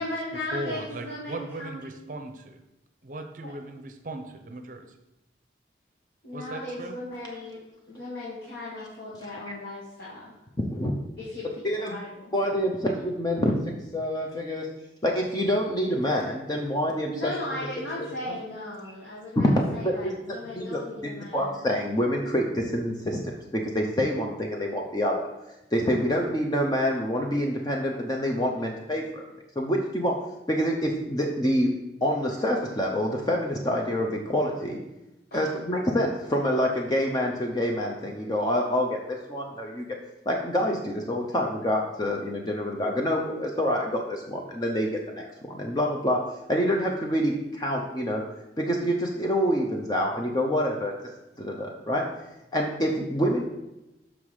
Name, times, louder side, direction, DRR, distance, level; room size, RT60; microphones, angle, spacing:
voice 1, 0.0-1.9 3.4-3.5 6.2-7.6 7.9-10.4 11.2-11.5 11.7-12.4 17.1-21.6 35.3-35.5, left 1 dB, 65° left, -7 dB, 1.8 m, -37 dB
voice 2, 0.5-2.6 3.0-4.9 6.3-7.0, right 1 dB, 45° right, 6 dB, 0.7 m, -38 dB
voice 3, 9.2-9.5 10.6-10.9 11.6-12.0 12.3-13.5 13.9-14.7 15.0-17.3 19.4-20.8 21.3-25.2 25.7-29.2 29.6-30.2 30.5-31.7 32.0-34.8 35.3-39.0 39.3-39.9 40.3-46.2 46.5-48.2 48.6-50.9 51.4-52.0 52.5-53.4, equal, 20° left, 0 dB, 0.6 m, -26 dB
6.1 x 5.6 x 4.8 m, 0.95 s
head